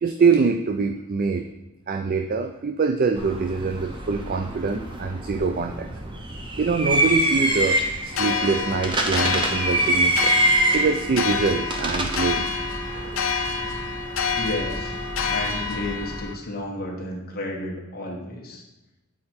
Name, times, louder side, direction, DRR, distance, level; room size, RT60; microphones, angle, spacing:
voice 1, 0.0-1.4 1.9-5.9 6.6-10.3 10.7-12.5 12.9-13.2, right 5 dB, 40° right, 6 dB, 0.3 m, -24 dB
sound 1, 3.2-16.2, right 1 dB, 20° right, 0.8 m, -26 dB
sound 2, 8.1-16.3, left 5 dB, 65° left, 0.7 m, -28 dB
voice 2, 14.3-15.0 15.3-18.6, left 1 dB, 45° left, -2 dB, 1.3 m, -32 dB
8.5 x 4.3 x 4.3 m, 1.0 s
head